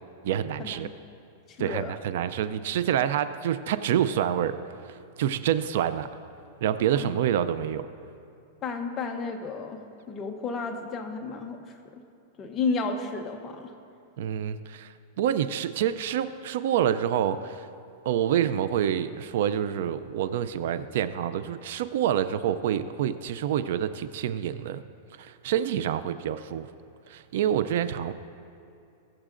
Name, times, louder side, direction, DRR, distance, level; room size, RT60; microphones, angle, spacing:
voice 1, 0.2-0.9 1.6-4.6 4.8-6.1 6.6-7.9 14.2-17.7 18.0-24.8 25.2-26.7 27.1-28.1, right 10 dB, 60° right, 13 dB, 0.4 m, -27 dB
voice 2, 1.5-1.9 6.9-7.1 8.6-9.8 10.1-11.7 12.4-13.7, left 4 dB, 20° left, 3 dB, 0.7 m, -32 dB
20.0 x 7.4 x 2.5 m, 2.7 s
supercardioid pair, 165°, 0 cm